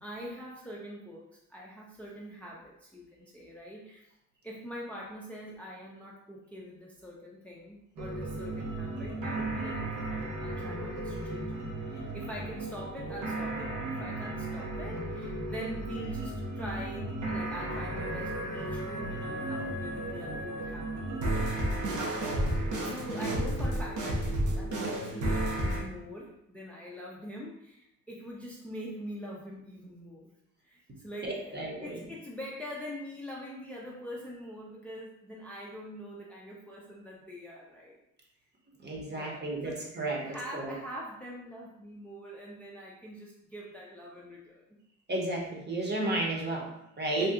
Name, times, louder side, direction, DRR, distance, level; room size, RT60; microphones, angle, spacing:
voice 1, 0.0-4.1 4.4-21.4 22.6-30.3 30.6-38.0 39.1-39.8 40.2-44.7 47.2-47.3, equal, 5° left, -4 dB, 0.5 m, -44 dB
sound 1, 8.0-25.8, right 1 dB, 75° right, 0.9 m, -33 dB
voice 2, 31.2-32.0 38.8-40.2 40.5-40.7 45.1-47.3, right 2 dB, 35° right, -1 dB, 0.9 m, -32 dB
2.8 x 2.2 x 3.6 m, 0.81 s
cardioid pair, 90°, 30 cm